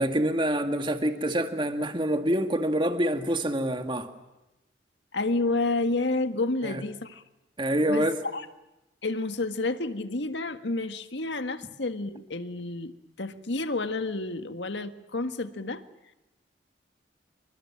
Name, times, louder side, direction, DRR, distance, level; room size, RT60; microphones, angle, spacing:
voice 1, 0.0-4.1 6.6-6.8 7.6-8.2, right 1 dB, 25° right, 6 dB, 2.0 m, -26 dB
voice 2, 5.1-7.2 7.9-8.4 9.0-12.9 13.2-15.8, left 2 dB, 80° left, 9 dB, 1.7 m, -30 dB
27.5 x 24.5 x 7.6 m, 0.96 s
head